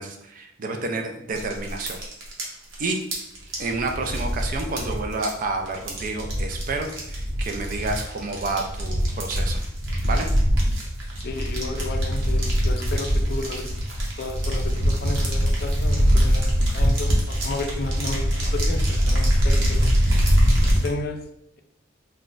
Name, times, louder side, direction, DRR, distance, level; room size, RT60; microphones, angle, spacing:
voice 1, 0.0-2.0 2.8-3.0 3.6-9.6 10.0-10.3, right 3 dB, 45° right, 4 dB, 0.4 m, -29 dB
sound 1, 1.3-20.9, equal, 80° right, 0.8 m, -23 dB
voice 2, 11.2-13.7 14.2-19.9 20.6-21.2, left 2 dB, 50° left, 5 dB, 0.4 m, -33 dB
3.9 x 2.2 x 2.4 m, 0.76 s
head